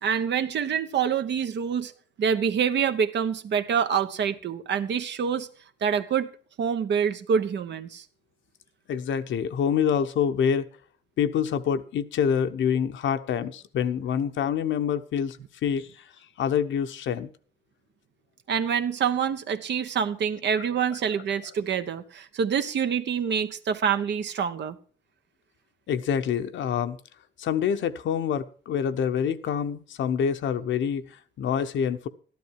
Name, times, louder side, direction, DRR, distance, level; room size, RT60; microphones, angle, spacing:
voice 1, 0.0-1.9 2.2-5.5 5.8-6.3 6.6-8.0 18.5-24.8, right 7 dB, 65° right, 1.2 m, -26 dB
voice 2, 8.9-10.7 11.2-15.4 15.6-16.1 16.4-17.3 20.6-20.7 25.9-27.0 27.4-32.1, left 8 dB, 70° left, 1.0 m, -26 dB
13.0 x 11.5 x 4.7 m
cardioid pair, 90°, 20 cm